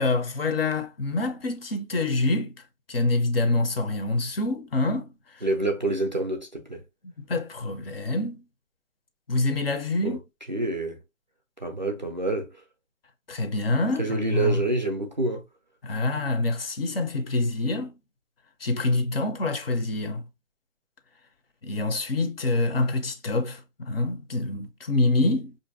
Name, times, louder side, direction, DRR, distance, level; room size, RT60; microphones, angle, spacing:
voice 1, 0.0-2.5 2.9-5.1 5.3-5.4 7.0-8.4 9.3-10.2 13.3-14.6 15.8-17.9 18.6-20.2 21.6-25.6, left 2 dB, 50° left, 0.6 m, -26 dB
voice 2, 5.4-6.8 10.0-10.2 10.5-11.0 11.6-12.5 14.0-15.4, right 2 dB, 40° right, 0.4 m, -27 dB
4.4 x 2.6 x 2.6 m
hypercardioid pair, 165°, 39 cm